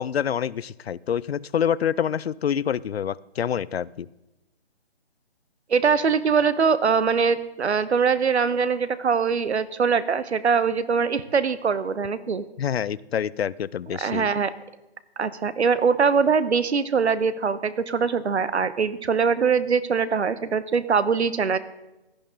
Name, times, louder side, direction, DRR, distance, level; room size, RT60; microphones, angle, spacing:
voice 1, 0.0-4.1 12.6-14.3, left 8 dB, 70° left, 22 dB, 0.5 m, -26 dB
voice 2, 5.7-12.4 14.0-14.5 15.2-21.6, right 5 dB, 85° right, 15 dB, 1.0 m, -22 dB
16.5 x 11.0 x 3.8 m, 0.98 s
hypercardioid pair, 175°, 33 cm